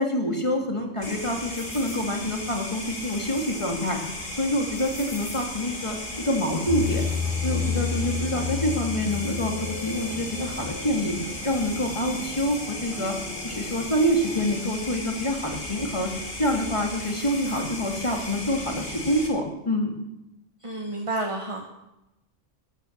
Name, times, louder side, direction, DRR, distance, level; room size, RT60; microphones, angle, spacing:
voice 1, 0.0-4.0 4.3-7.0 7.4-11.2 11.4-13.2 13.4-16.1 16.4-19.9, equal, 25° left, 2 dB, 2.2 m, -26 dB
sound 1, 1.0-19.3, left 2 dB, 40° left, 2.5 m, -36 dB
sound 2, 6.7-14.6, left 5 dB, ahead, 2.4 m, -32 dB
voice 2, 20.6-21.7, right 2 dB, 25° right, 2 dB, 1.4 m, -30 dB
14.0 x 10.0 x 7.1 m, 0.92 s
omnidirectional pair, 1.3 m